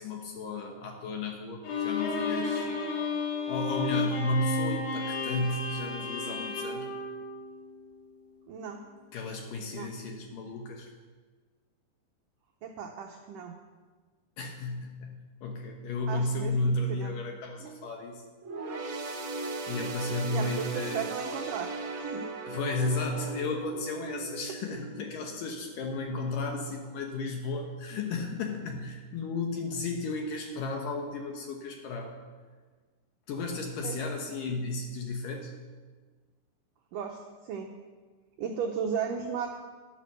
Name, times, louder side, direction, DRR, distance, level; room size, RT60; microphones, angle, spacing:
voice 1, 0.0-2.7 3.5-6.9 9.1-10.9 14.4-18.2 19.7-21.0 22.5-32.2 33.3-35.5, left 2 dB, 70° left, 3 dB, 2.3 m, -33 dB
Bowed string instrument, 1.6-7.9, left 4 dB, 85° left, 4.4 m, -32 dB
voice 2, 8.5-8.8 9.7-9.9 12.6-13.6 16.1-17.2 17.6-17.9 20.3-21.7 22.0-22.3 33.8-34.0 36.9-37.7 38.4-39.5, right 7 dB, 80° right, 2 dB, 1.9 m, -35 dB
sound 1, 18.4-26.1 26.5-26.7 27.6-27.7, right 3 dB, 60° right, 1.3 m, -38 dB
11.0 x 10.5 x 6.6 m, 1.4 s
omnidirectional pair, 4.8 m